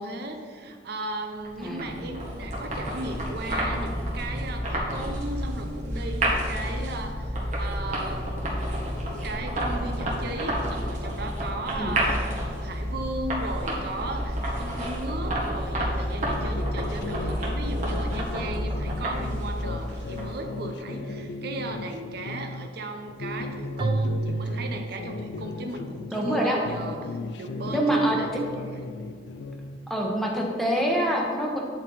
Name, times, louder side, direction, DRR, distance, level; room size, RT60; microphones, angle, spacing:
voice 1, 0.0-8.8 9.2-12.3 12.6-28.8, right 2 dB, 60° right, 4 dB, 0.6 m, -36 dB
sound 1, 1.4-20.5, equal, 40° right, 1.5 m, -30 dB
voice 2, 1.6-1.9 11.8-11.9 26.1-26.6 27.7-28.2 29.9-31.6, right 1 dB, ahead, -2 dB, 1.0 m, -25 dB
sound 2, 16.2-22.7 23.1-26.4 26.6-29.8, left 3 dB, 65° left, 0.4 m, -37 dB
Keyboard (musical), 23.8-26.0, right 2 dB, 25° right, 0.3 m, -30 dB
9.6 x 4.4 x 4.1 m, 2.1 s
head